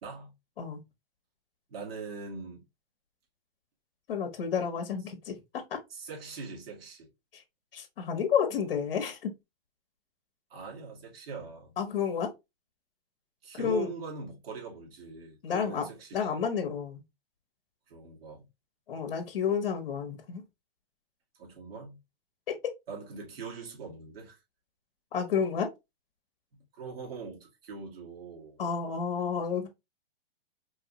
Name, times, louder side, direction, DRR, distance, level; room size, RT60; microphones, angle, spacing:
voice 1, 0.0-0.3 1.7-2.6 5.9-7.1 10.5-11.7 13.4-16.4 17.9-18.5 21.3-22.0 22.9-24.4 26.7-28.6, right 5 dB, 80° right, 2.2 m, -42 dB
voice 2, 4.1-5.8 7.3-7.4 7.7-9.3 11.8-12.3 13.5-13.9 15.4-15.8 16.1-17.0 18.9-20.4 22.5-22.7 25.1-25.7 28.6-29.7, left 7 dB, 70° left, 1.2 m, -30 dB
4.7 x 2.7 x 2.9 m
hypercardioid pair, 165°, 30 cm